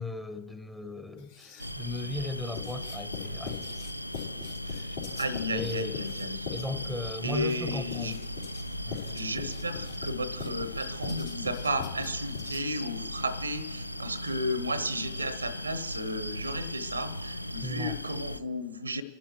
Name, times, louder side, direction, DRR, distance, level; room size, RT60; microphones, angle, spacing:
voice 1, 0.0-3.6 4.7-5.0 5.5-6.0 6.5-8.1 8.9-9.1 17.6-18.0, left 2 dB, 5° left, 7 dB, 1.0 m, -37 dB
Writing, 1.2-1.9 2.5-12.9, left 8 dB, 65° left, 3.2 m, -42 dB
sound 1, 1.6-18.4, left 1 dB, 90° left, 0.3 m, -38 dB
voice 2, 5.1-6.5 7.2-8.1 9.1-19.0, equal, 80° right, 16 dB, 0.9 m, -33 dB
29.5 x 11.5 x 3.1 m, 1.5 s
figure-of-eight pair, 90°, 0 cm